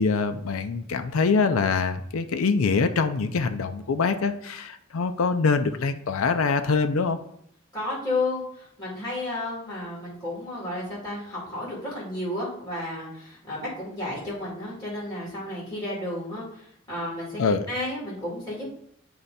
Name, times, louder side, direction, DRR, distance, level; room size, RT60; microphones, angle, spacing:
voice 1, 0.0-7.2 17.4-17.7, left 4 dB, 90° left, 8 dB, 0.5 m, -24 dB
voice 2, 7.7-18.7, left 2 dB, 20° left, -7 dB, 2.6 m, -32 dB
8.7 x 3.3 x 4.1 m, 0.71 s
head